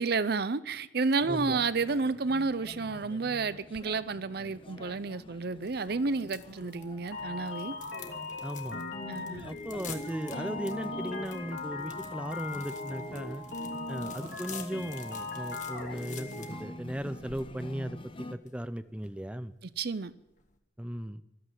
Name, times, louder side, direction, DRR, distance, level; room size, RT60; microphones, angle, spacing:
voice 1, 0.0-7.7 9.1-9.5 19.8-20.1, right 4 dB, 60° right, 0.7 m, -31 dB
sound 1, 1.2-18.3, left 1 dB, 30° left, 0.8 m, -47 dB
voice 2, 1.3-1.6 8.4-8.8 9.4-13.4 13.9-19.5 20.8-21.2, equal, 5° right, 0.5 m, -37 dB
sound 2, 5.6-20.6, left 6 dB, 45° left, 1.7 m, -49 dB
sound 3, 6.7-16.6, left 3 dB, 90° left, 3.6 m, -39 dB
14.5 x 13.0 x 7.5 m
head